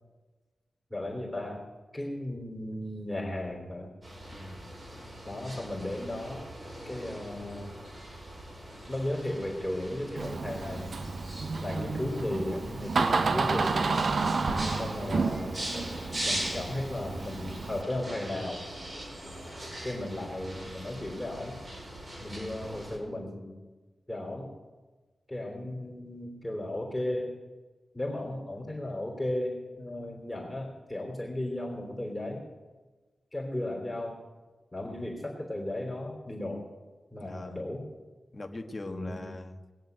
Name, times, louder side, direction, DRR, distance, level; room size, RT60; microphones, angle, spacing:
voice 1, 0.9-1.7 1.9-3.9 5.2-6.5 6.8-7.7 8.9-11.1 11.6-13.9 14.8-15.7 16.2-18.7 19.8-21.6 22.2-23.6 24.1-24.6 25.3-27.4 27.9-32.4 33.3-34.2 34.7-36.7 37.1-37.9 38.9-39.2, left 1 dB, 15° left, 0 dB, 3.3 m, -35 dB
sound 1, 4.0-23.0, right 1 dB, 40° right, 5.2 m, -41 dB
voice 2, 4.3-4.7 19.2-19.5 22.3-22.5 34.9-35.1 37.2-37.6 38.3-39.6, left 1 dB, 35° left, 4 dB, 1.5 m, -42 dB
Door, 10.2-17.8, right 4 dB, 70° right, 0.8 m, -31 dB
20.5 x 7.2 x 8.1 m, 1.3 s
wide cardioid pair, 75°, 0 cm